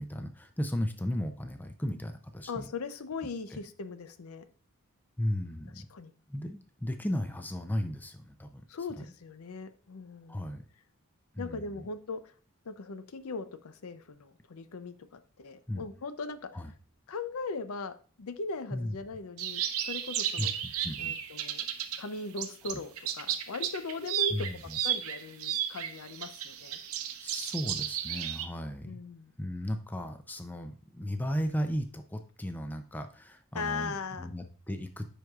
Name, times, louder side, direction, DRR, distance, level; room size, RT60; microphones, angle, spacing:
voice 1, 0.0-2.7 3.5-3.6 5.2-5.9 6.3-8.6 10.3-10.6 11.3-11.9 15.7-15.8 16.5-16.7 18.7-19.0 20.4-21.2 24.3-24.8 27.2-29.0 29.4-35.1, equal, 10° left, 7 dB, 0.4 m, -35 dB
voice 2, 2.5-4.4 5.8-6.1 8.7-10.4 11.4-12.3 12.7-16.5 17.1-20.5 21.0-21.6 22.0-24.5 24.8-26.8 28.8-29.3 33.5-34.3, left 3 dB, 75° left, 11 dB, 0.6 m, -39 dB
sound 1, 19.4-22.0 22.4-28.5, right 10 dB, 75° right, 0.7 m, -33 dB
9.9 x 4.6 x 2.4 m, 0.39 s
head